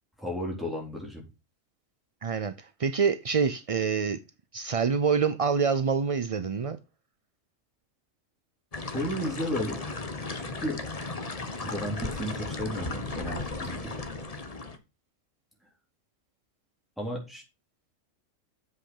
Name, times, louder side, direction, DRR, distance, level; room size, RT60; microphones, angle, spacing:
voice 1, 0.2-1.3 8.9-10.0 10.4-10.8 11.6-14.0 17.0-17.4, equal, ahead, 3.9 m, -33 dB
voice 2, 2.2-4.2 4.5-6.8, right 6 dB, 55° right, 0.4 m, -26 dB
sound 1, 8.7-14.8, left 3 dB, 30° left, 1.2 m, -35 dB
7.7 x 6.1 x 6.5 m
omnidirectional pair, 1.4 m